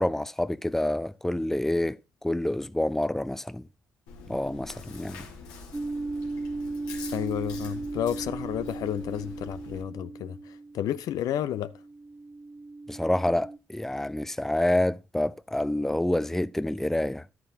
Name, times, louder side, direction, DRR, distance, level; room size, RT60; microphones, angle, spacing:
voice 1, 0.0-3.7 4.3-5.3 12.9-17.2, left 1 dB, 5° left, 0.5 m, -28 dB
Chewing mastication, 4.1-9.8, left 4 dB, 90° left, 2.1 m, -45 dB
sound 1, 5.7-13.6, right 3 dB, 15° right, 0.8 m, -37 dB
voice 2, 7.1-11.7, left 11 dB, 70° left, 0.6 m, -31 dB
11.5 x 9.4 x 2.8 m
supercardioid pair, 55°, 7 cm